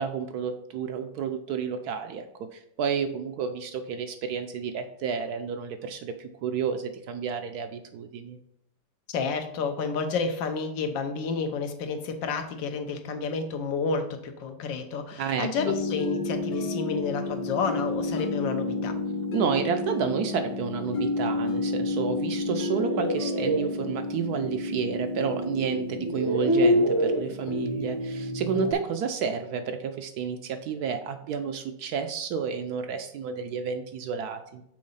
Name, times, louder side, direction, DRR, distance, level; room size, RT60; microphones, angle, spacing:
voice 1, 0.0-8.4 15.2-15.7 19.3-34.6, right 7 dB, 70° right, 8 dB, 1.0 m, -31 dB
voice 2, 9.1-18.9, left 5 dB, 85° left, 6 dB, 1.6 m, -30 dB
sound 1, 15.6-28.7, left 2 dB, 60° left, 1.3 m, -31 dB
sound 2, 22.4-23.7 25.2-25.3 25.9-27.3, equal, 35° right, 0.4 m, -25 dB
6.3 x 3.9 x 5.5 m, 0.76 s
omnidirectional pair, 2.0 m